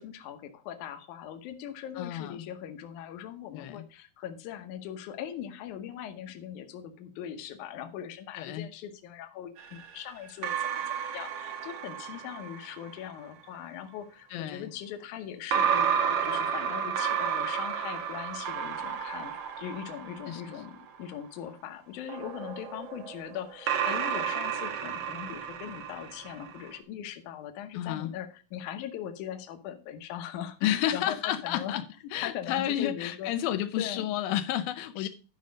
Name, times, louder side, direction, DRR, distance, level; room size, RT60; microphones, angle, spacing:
voice 1, 0.0-15.9 16.2-31.8 32.2-33.3 33.8-34.2 35.0-35.1, left 10 dB, 70° left, 2.3 m, -40 dB
voice 2, 2.0-2.4 3.5-3.9 8.4-8.7 14.3-14.7 20.3-20.4 27.7-28.1 30.6-31.8 32.1-35.1, left 12 dB, 85° left, 2.5 m, -31 dB
sound 1, 9.6-13.0 15.5-21.0 22.1-26.7, right 8 dB, 65° right, 1.7 m, -32 dB
11.5 x 5.5 x 5.1 m
omnidirectional pair, 4.1 m